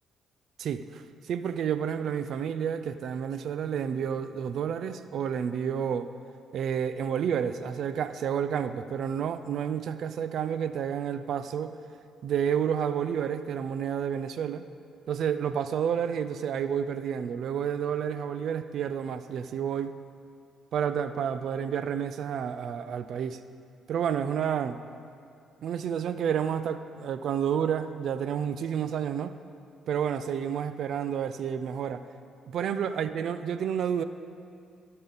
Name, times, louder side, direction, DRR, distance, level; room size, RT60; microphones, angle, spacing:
voice 1, 0.6-6.1 6.5-11.8 12.2-14.6 15.1-19.9 20.7-23.4 23.9-24.8 25.6-29.3 29.9-32.0 32.5-34.0, right 8 dB, 70° right, 12 dB, 0.4 m, -30 dB
16.0 x 5.6 x 4.0 m, 2.3 s
cardioid pair, 90°, 0 cm